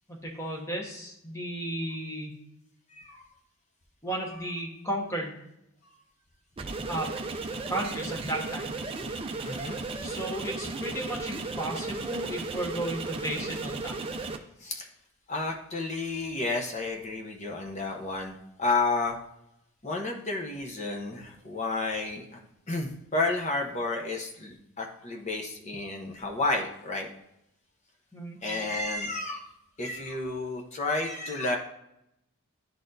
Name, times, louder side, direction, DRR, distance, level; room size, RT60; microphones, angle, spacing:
voice 1, 0.1-2.4 4.0-5.4 6.9-7.1 7.7-8.7 10.0-14.0 28.1-28.4, right 1 dB, 15° left, -1 dB, 1.2 m, -34 dB
voice 2, 2.9-3.3 9.4-9.8 14.6-14.9 15.3-19.2 19.8-22.4 22.7-27.1 28.4-29.4 29.8-31.6, left 3 dB, 30° left, 1 dB, 0.7 m, -31 dB
sound 1, 6.6-14.4, right 3 dB, 25° right, 0.4 m, -35 dB
10.5 x 4.1 x 2.6 m, 0.82 s
head